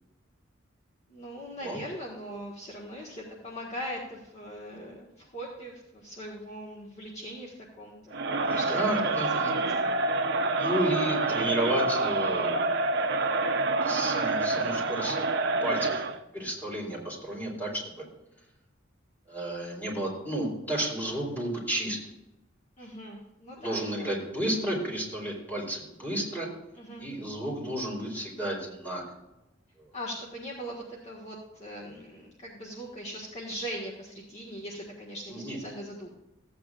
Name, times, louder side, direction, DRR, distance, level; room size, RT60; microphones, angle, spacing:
voice 1, 1.1-9.8 22.8-24.1 26.7-27.0 29.9-36.1, equal, 35° left, -4 dB, 1.6 m, -40 dB
Crowd, 8.1-16.2, right 3 dB, 60° right, 0.8 m, -27 dB
voice 2, 8.4-9.5 10.6-12.6 13.1-13.4 13.8-15.3 15.6-16.0 16.3-18.0 19.3-22.0 23.6-26.5 27.0-29.0 35.3-35.6, right 1 dB, 10° left, -3 dB, 4.0 m, -32 dB
15.0 x 9.0 x 2.5 m, 0.95 s
head